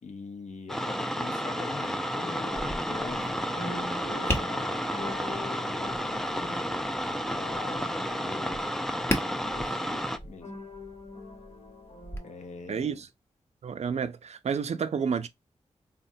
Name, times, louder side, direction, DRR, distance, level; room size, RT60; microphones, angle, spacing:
voice 1, 0.0-3.4 3.9-6.6 7.3-8.7 9.4-10.6 12.2-13.0, left 5 dB, 75° left, 0.7 m, -44 dB
sound 1, 0.7-10.2, equal, 5° left, 0.4 m, -31 dB
sound 2, 1.4-12.7, left 2 dB, 55° left, 1.0 m, -44 dB
Tap, 2.5-12.2, left 1 dB, 20° left, 0.8 m, -39 dB
voice 2, 12.7-13.1 13.6-15.3, right 6 dB, 65° right, 0.4 m, -30 dB
3.6 x 2.1 x 2.6 m
wide cardioid pair, 75°, 12 cm